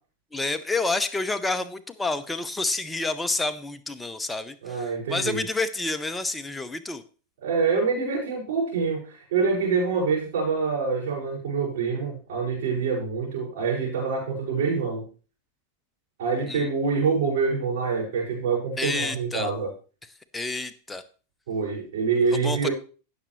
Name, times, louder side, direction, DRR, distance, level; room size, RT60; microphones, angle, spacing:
voice 1, 0.3-7.0 16.5-16.7 18.8-19.5 20.3-21.0 22.3-22.7, left 3 dB, 10° left, 11 dB, 0.8 m, -29 dB
voice 2, 4.6-5.4 7.4-9.0 9.3-15.1 16.2-19.7 21.5-22.7, right 5 dB, 55° right, -6 dB, 5.4 m, -26 dB
16.0 x 6.7 x 3.1 m, 0.37 s
figure-of-eight pair, 90°, 0 cm